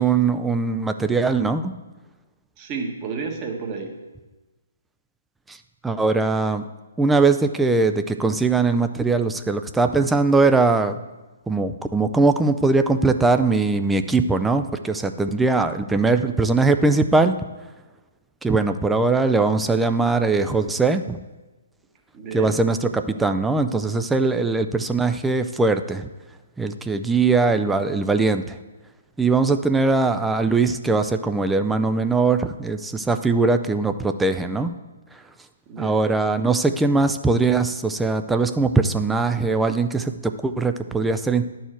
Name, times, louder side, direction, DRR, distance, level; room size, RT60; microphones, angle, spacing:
voice 1, 0.0-1.7 5.5-5.6 5.8-6.6 7.0-11.0 11.5-17.3 18.4-21.2 22.3-26.1 26.6-28.6 29.2-34.7 35.1-35.2 35.8-41.5, right 3 dB, 5° right, 8 dB, 0.3 m, -21 dB
voice 2, 2.6-3.9 22.1-22.5 35.7-36.0, right 5 dB, 30° right, 2 dB, 1.2 m, -31 dB
11.0 x 4.6 x 4.4 m, 1.2 s
hypercardioid pair, 140°, 0 cm